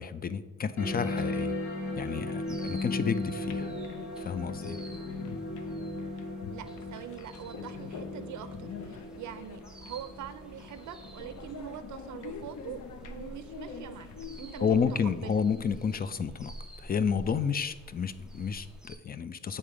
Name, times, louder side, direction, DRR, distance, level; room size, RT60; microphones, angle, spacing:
voice 1, 0.0-1.6 2.0-3.7 4.2-4.8 14.6-16.5 16.8-19.6, left 6 dB, 30° left, 13 dB, 0.4 m, -30 dB
sound 1, 0.8-11.8, left 2 dB, 70° left, 1.8 m, -37 dB
sound 2, 0.8-19.0, right 2 dB, ahead, 0.8 m, -50 dB
sound 3, 3.4-14.9, left 6 dB, 90° left, 0.7 m, -45 dB
voice 2, 6.5-14.1 14.4-15.4, right 10 dB, 75° right, 11 dB, 0.6 m, -44 dB
8.6 x 3.7 x 4.9 m, 1.3 s
wide cardioid pair, 150°, 30 cm